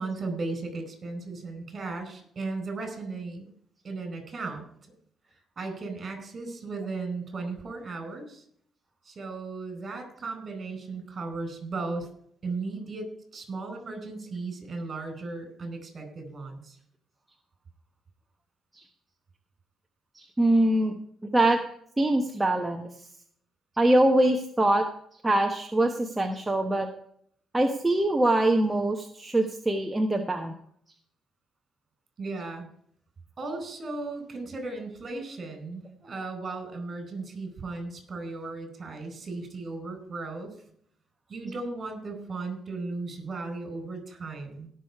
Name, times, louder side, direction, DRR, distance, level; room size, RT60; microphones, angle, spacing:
voice 1, 0.0-3.5 3.8-4.7 5.6-8.4 9.0-12.1 12.4-16.8 32.2-32.7 33.4-40.6 41.3-44.7, right 3 dB, 45° right, 6 dB, 4.5 m, -36 dB
voice 2, 20.1-20.9 21.3-21.6 22.0-22.9 23.8-24.8 25.2-26.9 27.5-30.5, right 1 dB, 15° right, 3 dB, 1.2 m, -23 dB
17.5 x 6.5 x 4.7 m, 0.65 s
cardioid pair, 90°, 0 cm